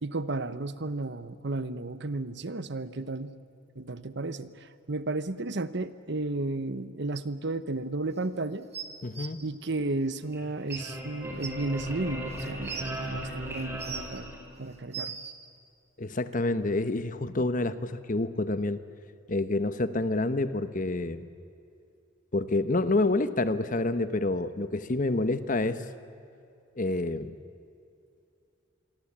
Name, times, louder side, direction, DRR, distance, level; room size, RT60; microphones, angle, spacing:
voice 1, 0.0-3.3 3.8-8.7 9.4-14.3 14.6-15.2, right 2 dB, 60° right, 14 dB, 1.0 m, -33 dB
sound 1, 8.7-9.3 10.3-10.4 10.7-10.8 11.4-11.5 12.3-12.9 13.6-14.2 14.7-15.3 16.3-16.4, right 7 dB, 35° right, 1.8 m, -38 dB
voice 2, 9.0-9.4 16.0-18.8 19.3-21.2 22.3-25.8 26.8-27.3, left 2 dB, 40° left, 12 dB, 1.0 m, -28 dB
sound 2, 10.2-14.9, equal, 10° right, 4.8 m, -38 dB
27.0 x 23.0 x 8.7 m, 2.5 s
head